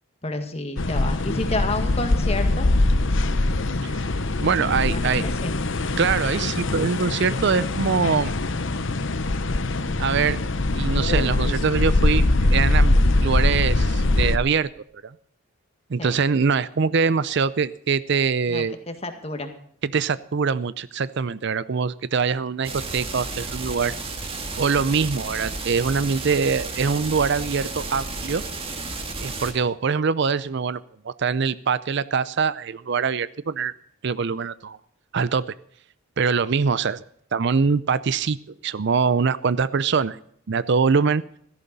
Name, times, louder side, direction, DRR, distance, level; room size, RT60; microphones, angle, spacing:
voice 1, 0.2-2.7 4.8-5.6 16.0-16.2 18.5-19.5, left 2 dB, 30° left, 6 dB, 1.8 m, -30 dB
sound 1, 0.8-14.4, left 2 dB, 60° left, 0.9 m, -22 dB
voice 2, 4.4-5.2 6.0-8.3 10.0-10.4 10.7-12.2 12.5-13.0 13.2-14.7 15.0-15.1 15.9-18.8 19.8-23.9 24.6-28.4 29.2-30.8 31.0-33.7 34.0-34.8 35.1-35.4 36.2-37.0 37.3-38.4 38.6-40.2 40.5-41.2, right 5 dB, 55° right, 17 dB, 0.5 m, -23 dB
sound 2, 22.6-29.5, right 3 dB, 25° right, 1.9 m, -32 dB
16.5 x 14.0 x 4.1 m, 0.64 s
head